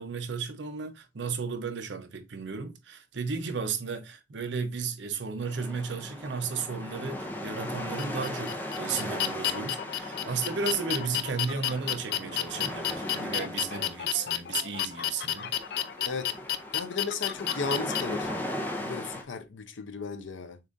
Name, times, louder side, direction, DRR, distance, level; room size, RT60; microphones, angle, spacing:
voice 1, 0.0-15.5, right 5 dB, 75° right, 0.7 m, -34 dB
sound 1, 5.4-19.2, left 1 dB, 10° left, 0.6 m, -38 dB
sound 2, 8.0-18.0, left 12 dB, 55° left, 0.4 m, -31 dB
voice 2, 16.7-18.3 18.8-20.7, left 4 dB, 90° left, 0.7 m, -35 dB
6.7 x 2.5 x 2.5 m
head